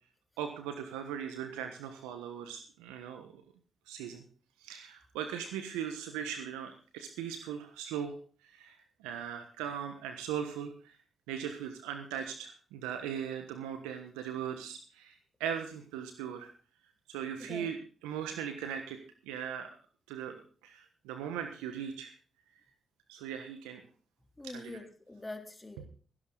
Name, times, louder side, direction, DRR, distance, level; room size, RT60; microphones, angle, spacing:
voice 1, 0.4-3.4 3.9-4.2 4.6-8.1 8.5-10.9 11.3-16.5 17.1-17.8 18.0-19.0 19.3-19.7 20.1-22.1 23.1-23.8 24.4-24.8, right 8 dB, 85° right, 7 dB, 1.3 m, -39 dB
voice 2, 24.4-25.9, left 2 dB, 20° left, 5 dB, 3.4 m, -44 dB
16.0 x 11.5 x 3.9 m, 0.39 s
hypercardioid pair, 45°, 0 cm